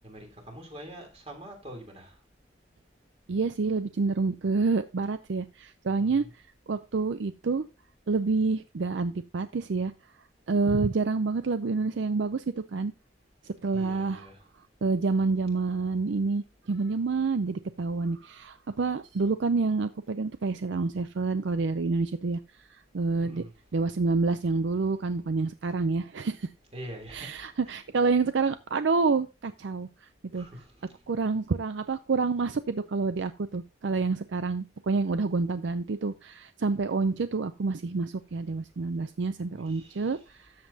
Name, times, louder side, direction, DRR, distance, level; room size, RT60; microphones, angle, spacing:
voice 1, 0.0-2.2 6.0-6.3 13.7-14.5 23.2-23.5 26.7-27.8 30.3-31.0 39.5-40.2, right 1 dB, 30° right, 3.2 m, -45 dB
voice 2, 3.3-7.6 8.1-9.9 10.5-12.9 13.4-14.3 14.8-23.4 23.7-26.5 27.1-30.5 31.1-40.5, right 4 dB, 65° right, 0.5 m, -28 dB
13.0 x 7.5 x 2.7 m
head